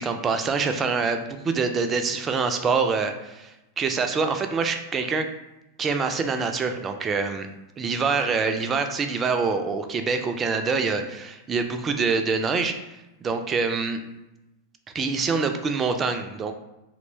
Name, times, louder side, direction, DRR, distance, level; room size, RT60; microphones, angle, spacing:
voice 1, 0.0-5.3 5.8-7.5 7.8-12.7 13.2-14.0 14.9-16.5, right 4 dB, 25° right, 7 dB, 0.3 m, -25 dB
2.9 x 2.1 x 4.0 m, 0.96 s
figure-of-eight pair, 90°, 0 cm